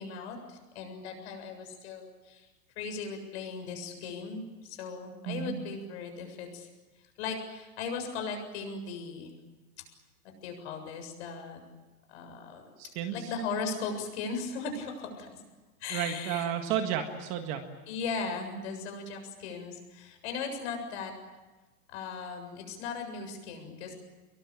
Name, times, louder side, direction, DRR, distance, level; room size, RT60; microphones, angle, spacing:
voice 1, 0.0-2.5 2.8-6.7 7.2-9.3 10.4-11.6 12.1-12.7 13.1-15.4 15.8-16.5 17.9-21.1 21.9-23.9, left 5 dB, 40° left, 5 dB, 7.5 m, -38 dB
voice 2, 5.3-5.6 12.8-13.3 15.9-17.6, right 9 dB, 25° right, 5 dB, 1.8 m, -32 dB
25.5 x 23.0 x 8.9 m, 1.2 s
supercardioid pair, 165°, 48 cm